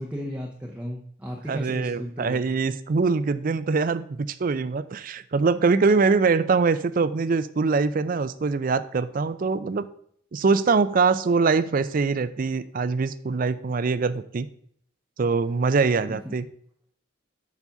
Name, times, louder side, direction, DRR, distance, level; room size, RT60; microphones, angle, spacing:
voice 1, 0.0-2.5 16.1-16.4, equal, 5° right, -2 dB, 0.7 m, -35 dB
voice 2, 1.5-9.9 10.3-14.5 15.2-16.5, right 4 dB, 45° right, 14 dB, 0.4 m, -23 dB
7.0 x 4.1 x 5.6 m, 0.64 s
head